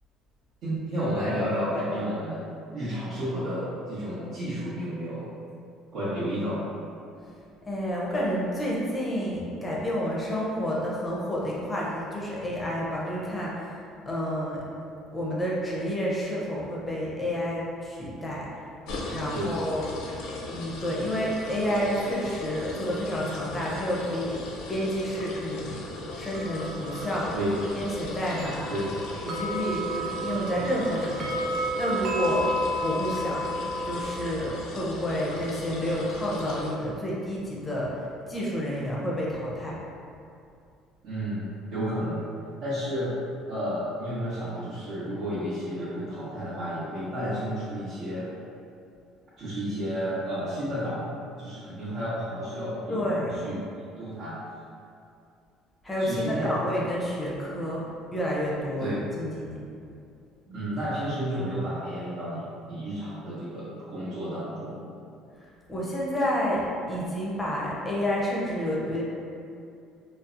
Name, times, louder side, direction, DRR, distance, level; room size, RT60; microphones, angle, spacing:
voice 1, 0.6-2.5 2.7-5.2 5.9-6.7 19.3-19.6 27.3-27.7 28.7-29.0 41.0-42.2 42.6-43.1 43.5-48.3 49.4-53.6 54.0-54.4 56.0-56.6 58.8-59.2 60.5-64.9, equal, 60° right, -14 dB, 0.8 m, -31 dB
voice 2, 7.7-13.8 14.1-14.6 15.1-18.5 19.1-19.9 20.5-25.8 26.1-27.3 27.7-28.7 29.2-32.5 32.8-33.4 33.8-39.8 52.9-53.4 55.8-59.6 65.4-69.0, equal, 15° left, -5 dB, 0.5 m, -30 dB
sound 1, 18.9-36.7, left 2 dB, 75° left, 0.4 m, -38 dB
sound 2, 26.3-34.0, right 1 dB, 45° right, 0.4 m, -32 dB
2.7 x 2.0 x 2.4 m, 2.5 s
cardioid pair, 115°, 0 cm